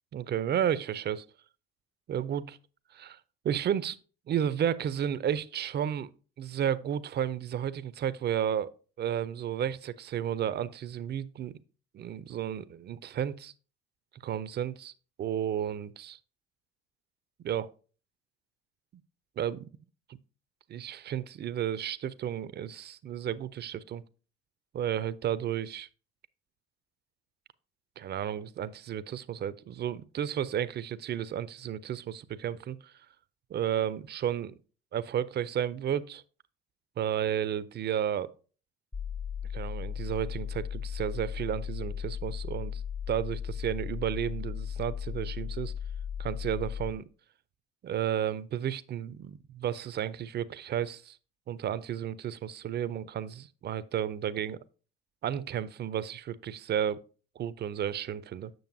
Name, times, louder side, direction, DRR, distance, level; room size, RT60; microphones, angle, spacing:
voice 1, 0.1-1.2 2.1-2.6 2.9-3.2 3.4-4.0 4.3-6.1 6.4-8.7 9.0-11.6 11.9-13.5 14.1-14.9 15.2-16.2 17.4-17.7 19.4-19.7 20.7-24.0 24.7-25.9 28.0-32.9 33.5-34.6 34.9-36.2 37.0-38.3 39.5-42.8 43.1-45.7 46.2-47.1 47.8-51.2 51.5-54.6 55.2-57.0 57.4-58.5, right 9 dB, 35° right, 0.5 m, -32 dB
sound 1, 38.9-46.9, left 8 dB, 15° left, 0.7 m, -36 dB
7.8 x 6.6 x 2.6 m
hypercardioid pair, 60°, 31 cm